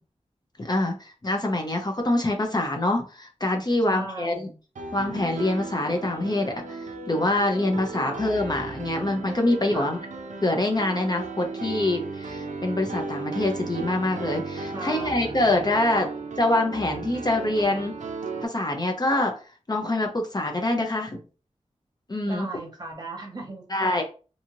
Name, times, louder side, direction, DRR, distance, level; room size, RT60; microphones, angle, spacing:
voice 1, 0.6-4.3 4.9-10.0 10.4-16.1 16.4-17.9 18.4-19.3 19.7-21.2 22.1-22.5 23.7-24.0, left 2 dB, 35° left, 2 dB, 0.6 m, -25 dB
voice 2, 3.9-4.6 8.0-8.3 9.7-9.9 14.7-15.3 15.9-16.1 22.2-24.0, right 2 dB, 35° right, 1 dB, 0.9 m, -37 dB
Piano, 4.8-18.5, right 3 dB, 90° right, 0.4 m, -35 dB
2.7 x 2.4 x 2.9 m, 0.36 s
wide cardioid pair, 80°, 12 cm